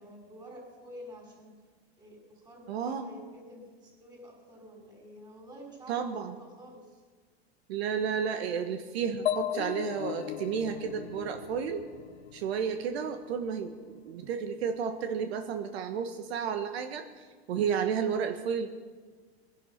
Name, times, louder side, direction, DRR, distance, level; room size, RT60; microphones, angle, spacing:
voice 1, 0.0-1.6 2.0-7.0, equal, 10° right, -2 dB, 5.3 m, -49 dB
voice 2, 2.7-3.1 5.9-6.3 7.7-11.9 12.3-18.7, right 7 dB, 70° right, 6 dB, 1.4 m, -32 dB
sound 1, 9.3-12.9, left 11 dB, 90° left, 1.0 m, -36 dB
21.0 x 11.0 x 5.8 m, 1.5 s
supercardioid pair, 140°, 32 cm